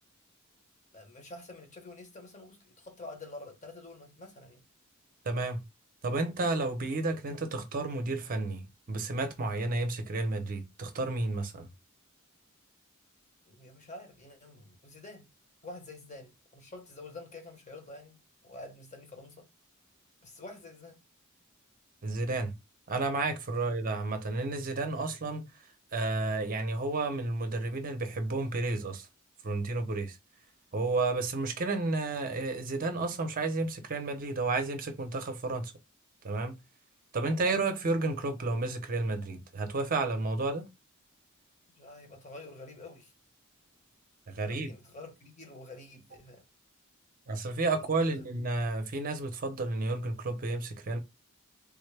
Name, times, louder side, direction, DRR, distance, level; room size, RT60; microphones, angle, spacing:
voice 1, 0.9-4.6 13.5-15.3 15.6-19.5 20.2-21.0 23.5-23.7 37.3-37.4 41.8-43.1 44.4-46.4 47.7-48.3, left 2 dB, 35° left, 0.9 m, -48 dB
voice 2, 5.2-5.6 6.0-11.7 22.0-22.6 22.9-25.5 25.9-29.1 29.4-30.2 30.7-35.7 36.2-36.6 37.1-40.7 44.3-44.7 47.3-51.0, right 3 dB, 40° right, 0.6 m, -31 dB
3.5 x 2.1 x 3.2 m
head